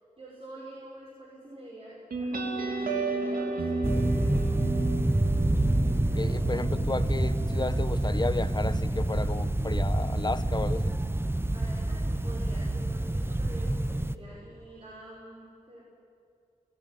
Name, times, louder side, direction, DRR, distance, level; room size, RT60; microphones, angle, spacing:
voice 1, 0.2-4.4 11.5-15.8, right 1 dB, 40° right, -5 dB, 6.4 m, -47 dB
sound 1, 2.1-9.3, right 3 dB, 80° right, 3.0 m, -34 dB
sound 2, 3.8-14.2, right 1 dB, 15° right, 1.1 m, -27 dB
voice 2, 6.1-11.0, left 3 dB, 30° left, 13 dB, 1.1 m, -33 dB
29.5 x 16.5 x 9.4 m, 2.5 s
cardioid pair, 55°, 15 cm